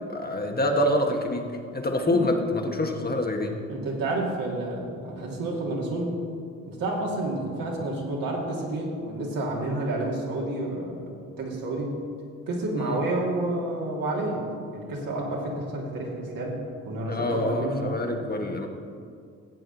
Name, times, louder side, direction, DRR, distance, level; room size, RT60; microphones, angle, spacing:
voice 1, 0.1-3.5 12.8-13.0 17.1-18.7, left 1 dB, 25° left, 2 dB, 1.4 m, -26 dB
voice 2, 3.7-6.1 6.7-12.0 12.5-14.5 14.7-16.6 16.8-17.9, right 2 dB, 60° right, -2 dB, 2.6 m, -30 dB
16.0 x 8.4 x 4.0 m, 2.3 s
hypercardioid pair, 50°, 38 cm